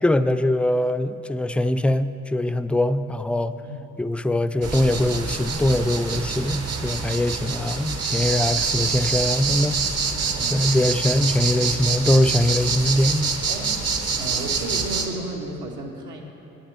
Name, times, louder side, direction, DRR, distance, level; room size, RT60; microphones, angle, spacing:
voice 1, 0.0-3.6 4.0-9.8 10.2-13.4, left 1 dB, 5° left, 11 dB, 0.3 m, -22 dB
voice 2, 3.6-4.0 10.4-10.9 13.5-13.7 14.2-16.2, right 2 dB, 75° right, 0 dB, 1.6 m, -33 dB
sound 1, 4.6-15.1, right 5 dB, 55° right, 1.1 m, -26 dB
8.7 x 7.3 x 8.0 m, 2.9 s
cardioid pair, 70°, 30 cm